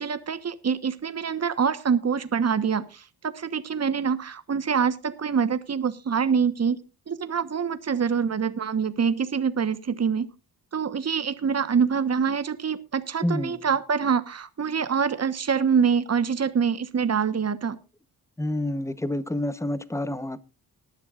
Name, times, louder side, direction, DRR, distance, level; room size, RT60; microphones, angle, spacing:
voice 1, 0.0-6.8 7.1-10.3 10.7-17.8, right 6 dB, 40° right, 1.2 m, -25 dB
voice 2, 13.2-13.6 18.4-20.4, left 1 dB, 5° left, 0.9 m, -28 dB
19.5 x 11.5 x 2.5 m
cardioid pair, 90°, 39 cm